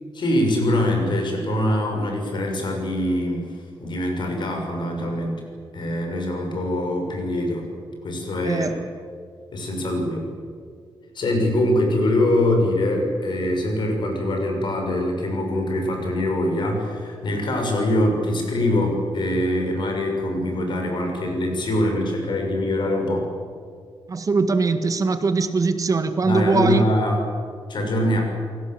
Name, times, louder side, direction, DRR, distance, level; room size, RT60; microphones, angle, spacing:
voice 1, 0.1-3.5 3.8-5.4 5.7-7.7 8.0-8.8 9.5-10.3 11.1-23.2 26.2-27.2 27.7-28.2, left 1 dB, 60° left, 2 dB, 6.6 m, -23 dB
voice 2, 8.5-8.8 24.1-26.9, right 4 dB, 40° right, 9 dB, 1.8 m, -21 dB
29.5 x 18.0 x 7.9 m, 2.2 s
cardioid pair, 105°, 9 cm